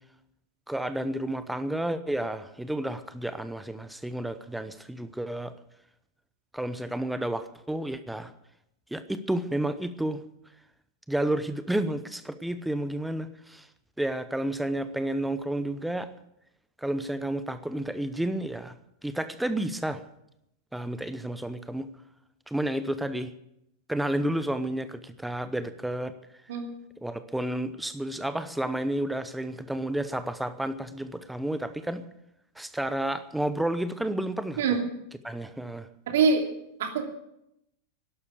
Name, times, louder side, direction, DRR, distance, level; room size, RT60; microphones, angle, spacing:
voice 1, 0.7-5.5 6.5-8.3 8.9-10.2 11.1-13.7 14.0-16.1 16.8-18.7 19.0-20.0 20.7-21.9 22.5-23.3 23.9-26.1 27.0-32.0 32.6-34.8 35.2-35.9, right 1 dB, 5° right, 12 dB, 0.8 m, -31 dB
voice 2, 36.1-36.4 36.8-37.1, right 5 dB, 55° right, 4 dB, 2.6 m, -23 dB
12.0 x 11.5 x 8.4 m, 0.82 s
figure-of-eight pair, 90°, 0 cm